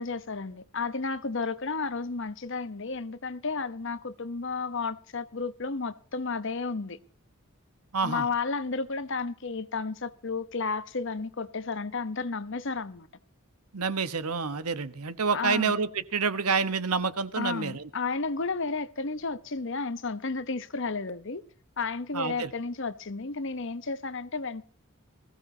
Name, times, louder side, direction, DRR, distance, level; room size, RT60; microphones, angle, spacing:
voice 1, 0.0-7.0 8.0-13.1 15.3-15.7 17.4-21.4 21.8-24.6, left 4 dB, 55° left, 0.9 m, -32 dB
voice 2, 7.9-8.3 13.7-17.9 22.1-22.5, right 5 dB, 90° right, 1.2 m, -28 dB
20.5 x 15.5 x 2.8 m
head